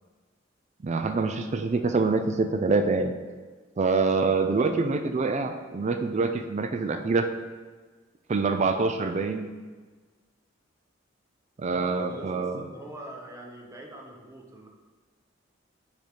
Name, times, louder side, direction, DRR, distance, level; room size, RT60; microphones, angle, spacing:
voice 1, 0.8-3.1 3.8-7.3 8.3-9.5 11.6-12.6, right 4 dB, 35° right, 7 dB, 0.4 m, -25 dB
voice 2, 4.2-4.7 11.7-14.7, right 1 dB, 15° right, 0 dB, 0.8 m, -43 dB
5.2 x 5.1 x 4.6 m, 1.4 s
head